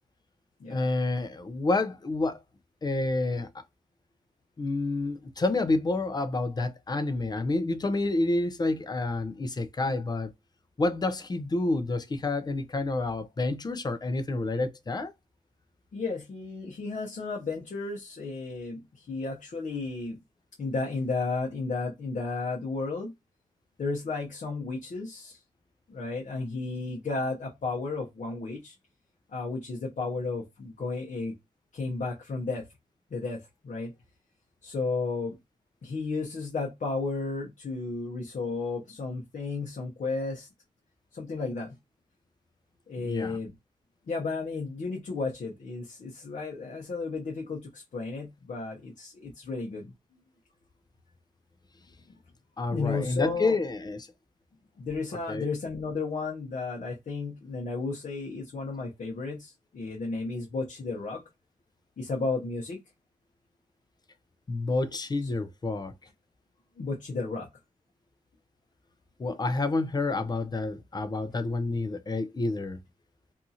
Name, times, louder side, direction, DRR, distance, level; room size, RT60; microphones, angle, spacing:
voice 1, 0.7-2.4 2.8-3.6 4.6-10.3 10.8-15.1 43.0-43.4 52.6-54.1 55.3-55.5 64.5-65.9 69.2-72.8, left 2 dB, 30° left, 0.5 m, -29 dB
voice 2, 15.9-20.2 20.6-23.1 23.8-25.4 25.9-28.8 29.3-31.3 31.7-32.7 33.1-33.9 34.6-35.3 35.8-40.5 41.1-41.8 42.9-43.5 44.1-49.9 52.7-53.6 54.8-61.2 62.0-62.8 66.8-67.5, left 3 dB, 60° left, 0.9 m, -33 dB
2.7 x 2.4 x 2.7 m
cardioid pair, 80°, 14 cm